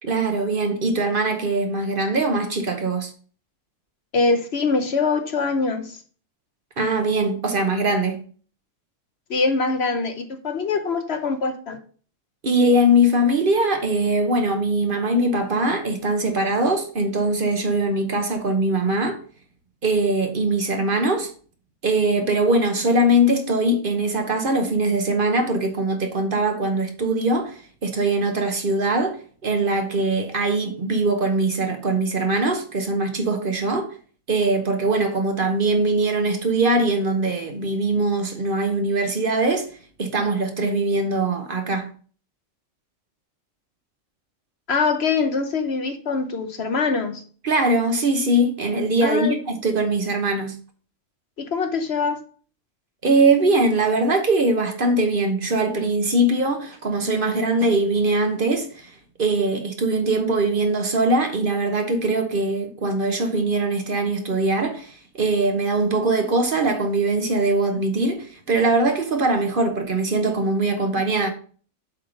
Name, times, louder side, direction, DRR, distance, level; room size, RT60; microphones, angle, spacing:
voice 1, 0.0-3.1 6.8-8.2 12.4-19.2 19.8-21.3 21.8-33.9 34.3-39.7 40.0-41.9 47.4-50.6 53.0-58.9 59.2-71.3, right 2 dB, 45° right, 1.0 m, -21 dB
voice 2, 4.1-6.0 9.3-11.8 44.7-47.2 49.0-49.4 51.4-52.2, left 4 dB, 60° left, 1.1 m, -23 dB
7.8 x 3.7 x 5.1 m
omnidirectional pair, 1.3 m